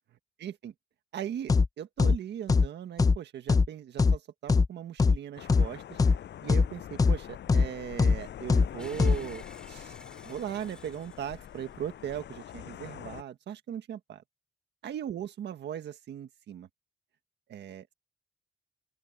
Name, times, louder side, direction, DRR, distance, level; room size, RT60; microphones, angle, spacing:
voice 1, 0.4-0.7 1.1-6.0 6.4-9.9 10.2-14.2 14.8-16.7 17.5-17.9, right 10 dB, 80° right, 1.7 m, -39 dB
sound 1, 1.5-1.7 2.0-2.2 2.5-2.7 3.0-3.2 3.5-3.7 4.0-4.2 4.5-4.7 5.0-5.2 5.5-5.7 6.0-6.2 6.5-6.7 7.0-7.2 7.5-7.7 8.0-8.2 8.5-8.7 9.0-9.2, left 4 dB, 20° left, 0.7 m, -21 dB
sound 2, 5.4-13.2, left 10 dB, 90° left, 7.5 m, -44 dB
sound 3, 8.8-12.3, left 1 dB, 5° left, 6.9 m, -52 dB
open air
wide cardioid pair, 170°, 18 cm